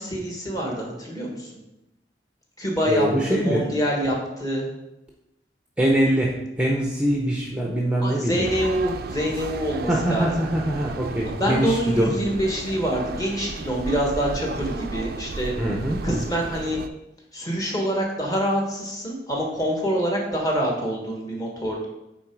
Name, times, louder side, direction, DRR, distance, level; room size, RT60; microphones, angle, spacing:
voice 1, 0.0-1.5 2.6-4.7 8.0-10.3 11.2-15.5 16.0-16.8 17.3-21.9, equal, 20° left, -1 dB, 1.6 m, -26 dB
voice 2, 2.9-3.6 5.8-8.4 9.9-12.1 15.6-16.0, right 1 dB, 5° right, -2 dB, 0.7 m, -23 dB
sound 1, 8.4-16.9, right 3 dB, 55° right, 0.4 m, -34 dB
8.7 x 3.9 x 4.6 m, 0.92 s
head